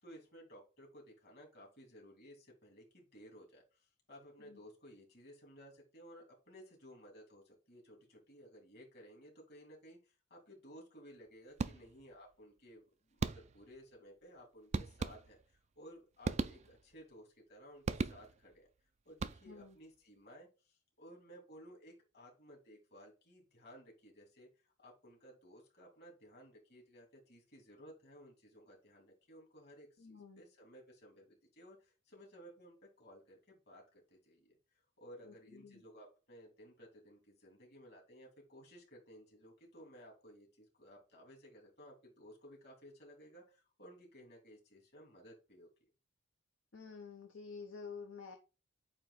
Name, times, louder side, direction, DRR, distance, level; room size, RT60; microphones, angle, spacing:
voice 1, 0.0-18.7 19.0-34.6 35.0-45.7, equal, 50° left, 0 dB, 2.9 m, -57 dB
sound 1, 11.6-12.2 13.2-13.8 14.7-15.6 16.2-17.0 17.9-18.6 19.1-19.8, right 4 dB, 35° right, 0.3 m, -39 dB
voice 2, 30.0-30.4 35.5-35.8 46.7-48.4, left 5 dB, 70° left, 3 dB, 0.9 m, -49 dB
8.7 x 2.9 x 4.0 m, 0.33 s
head